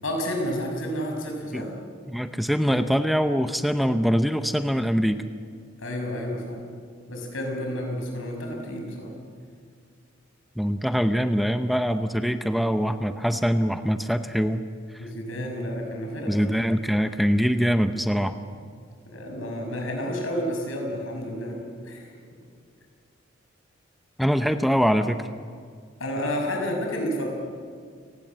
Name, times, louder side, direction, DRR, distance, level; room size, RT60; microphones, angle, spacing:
voice 1, 0.0-1.7 5.8-6.7 7.1-9.1 15.0-16.4 19.1-22.1 26.0-27.3, equal, 80° left, 2 dB, 6.2 m, -30 dB
voice 2, 2.1-5.2 10.6-14.6 16.3-18.4 24.2-25.3, equal, ahead, 9 dB, 0.7 m, -23 dB
29.0 x 18.0 x 7.6 m, 2.1 s
head